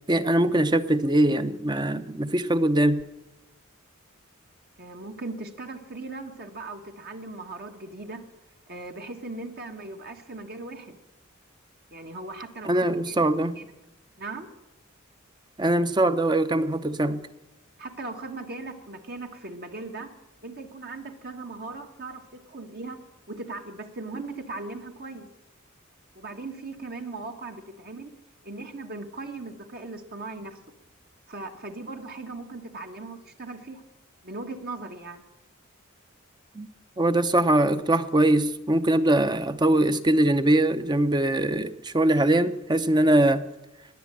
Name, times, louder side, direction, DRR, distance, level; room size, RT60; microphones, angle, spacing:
voice 1, 0.1-3.0 12.6-13.6 15.6-17.2 36.5-36.7 37.0-43.5, right 1 dB, 20° right, 11 dB, 0.7 m, -22 dB
voice 2, 4.8-8.3 8.7-11.0 11.9-13.7 14.2-14.5 17.8-20.1 20.4-23.0 23.3-25.3 26.1-28.1 28.4-30.6 31.3-33.8 34.2-35.2, right 3 dB, 50° right, 4 dB, 1.4 m, -38 dB
20.0 x 7.6 x 8.6 m, 0.95 s
head